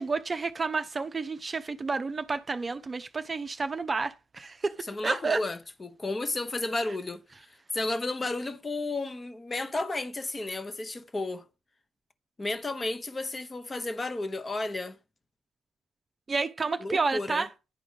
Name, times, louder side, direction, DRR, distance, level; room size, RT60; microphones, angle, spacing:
voice 1, 0.0-4.7 5.0-5.4 16.3-17.5, right 4 dB, 25° right, 0.7 m, -30 dB
voice 2, 4.9-7.2 7.7-11.4 12.4-15.0 16.8-17.5, left 2 dB, 20° left, 1.0 m, -32 dB
10.5 x 5.1 x 5.1 m
figure-of-eight pair, 50°, 0 cm